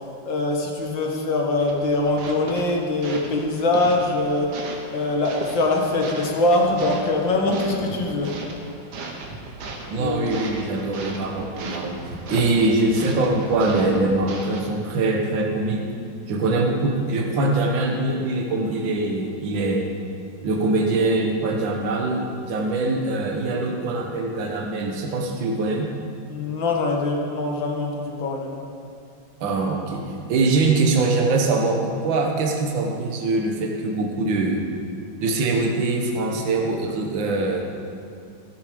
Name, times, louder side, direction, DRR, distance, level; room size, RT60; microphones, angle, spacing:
voice 1, 0.3-4.5 4.9-8.4 10.0-10.4 12.3-12.4 26.3-28.6, left 2 dB, 70° left, 0 dB, 2.1 m, -23 dB
sound 1, 1.6-14.6, right 3 dB, 60° right, 1.7 m, -37 dB
voice 2, 9.9-12.0 12.3-15.8 16.3-19.9 20.4-25.9 29.4-30.0 30.3-34.6 35.2-37.6, right 2 dB, 75° right, 1 dB, 1.9 m, -23 dB
15.5 x 8.3 x 5.1 m, 2.4 s
omnidirectional pair, 2.1 m